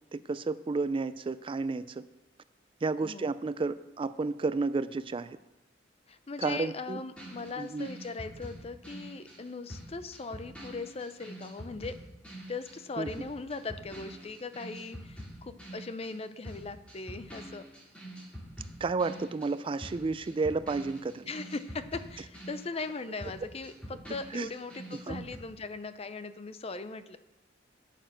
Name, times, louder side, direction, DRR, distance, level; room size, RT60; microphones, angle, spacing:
voice 1, 0.1-2.0 2.8-5.4 6.4-7.0 7.6-7.9 13.0-13.1 18.8-21.3 24.3-24.5 25.1-25.3, right 3 dB, 30° right, 14 dB, 0.3 m, -31 dB
voice 2, 3.0-3.3 6.1-12.0 12.5-17.6 21.3-27.2, left 3 dB, 35° left, 12 dB, 0.6 m, -39 dB
sound 1, 7.2-16.2 16.4-25.4, equal, 5° left, 2.5 m, -45 dB
9.1 x 8.8 x 6.2 m, 0.95 s
head